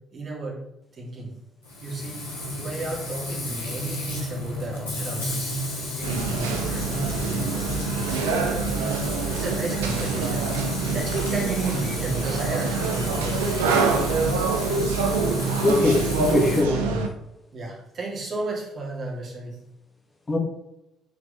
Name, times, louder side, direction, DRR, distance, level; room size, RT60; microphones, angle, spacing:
voice 1, 0.1-0.6 0.9-1.3 1.8-2.2 2.6-5.5 6.0-8.9 9.3-14.1 17.5-19.6, right 2 dB, 45° right, -2 dB, 2.9 m, -33 dB
Frying (food), 1.6-16.6, left 1 dB, 80° left, 2.9 m, -31 dB
sound 1, 6.0-17.1, right 5 dB, 75° right, 0.9 m, -26 dB
voice 2, 15.6-17.0 20.3-20.4, left 2 dB, 25° left, 0 dB, 1.8 m, -22 dB
8.1 x 6.1 x 3.3 m, 0.88 s
figure-of-eight pair, 50°, 0 cm